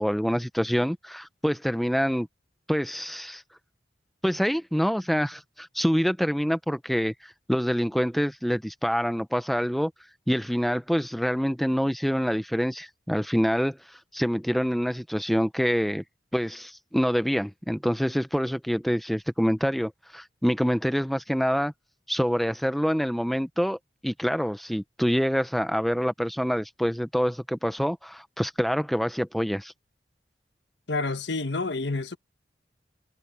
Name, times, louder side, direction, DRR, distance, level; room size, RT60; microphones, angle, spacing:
voice 1, 0.0-2.3 2.7-3.4 4.2-9.9 10.3-16.0 16.3-21.7 22.1-23.8 24.0-29.7, equal, ahead, 0.6 m, -26 dB
voice 2, 30.9-32.2, left 3 dB, 80° left, 1.4 m, -28 dB
head